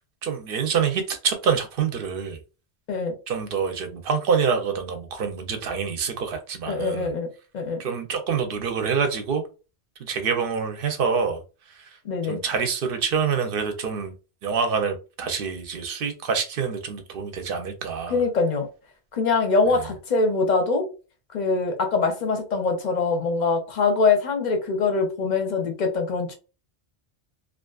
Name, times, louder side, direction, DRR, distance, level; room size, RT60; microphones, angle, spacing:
voice 1, 0.2-2.4 3.3-7.1 7.8-9.4 10.0-11.4 11.8-11.9 12.2-14.1 14.4-18.2, right 6 dB, 60° right, 0.7 m, -26 dB
voice 2, 6.7-7.3 7.5-7.8 12.0-12.4 18.1-18.7 19.1-20.9 21.3-26.3, left 4 dB, 50° left, 0.6 m, -23 dB
2.5 x 2.4 x 2.3 m
omnidirectional pair, 1.1 m